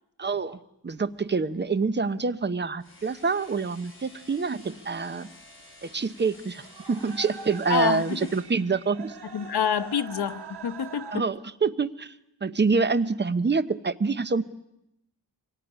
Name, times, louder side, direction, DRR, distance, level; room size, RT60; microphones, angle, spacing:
voice 1, 0.2-5.3 5.8-9.2 11.1-12.2 12.4-14.4, right 4 dB, 25° right, 13 dB, 0.8 m, -26 dB
sound 1, 0.9-11.2, right 5 dB, 80° right, 1.7 m, -45 dB
Caulking Hammer, 2.8-8.5, left 2 dB, 30° left, 7.8 m, -51 dB
voice 2, 7.7-8.2 9.3-11.3, left 8 dB, 75° left, 11 dB, 1.1 m, -27 dB
24.5 x 18.0 x 10.0 m, 0.83 s
wide cardioid pair, 140°, 39 cm